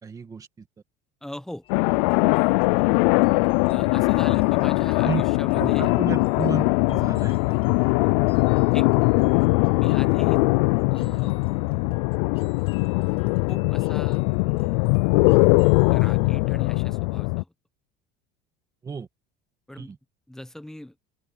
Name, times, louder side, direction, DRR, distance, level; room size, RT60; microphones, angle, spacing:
voice 1, 0.0-0.7 5.0-5.2 5.5-7.8 9.3-9.4 18.8-19.1 19.7-20.0, right 5 dB, 15° right, 2.1 m, -32 dB
voice 2, 1.2-1.6 3.7-5.9 8.0-8.1 8.7-8.9 9.8-10.4 10.9-11.4 13.5-14.8 15.9-17.5 19.7-19.9 20.3-20.9, left 1 dB, ahead, 1.1 m, -40 dB
sound 1, 1.6-16.5, left 10 dB, 25° left, 1.8 m, -54 dB
sound 2, 1.7-17.4, left 27 dB, 85° left, 0.4 m, -21 dB
open air
cardioid pair, 170°, 21 cm